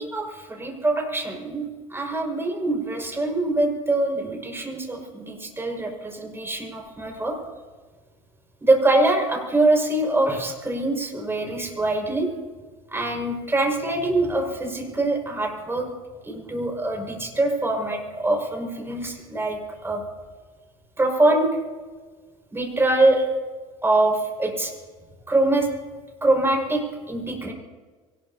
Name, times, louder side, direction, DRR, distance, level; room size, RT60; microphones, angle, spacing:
voice 1, 0.0-7.3 8.6-12.3 12.9-15.8 16.2-20.0 21.0-21.5 22.5-23.3 23.8-24.7 25.3-25.7 26.2-27.5, right 2 dB, 15° right, 1 dB, 5.6 m, -24 dB
23.5 x 20.0 x 2.8 m, 1.4 s
hypercardioid pair, 75°, 18 cm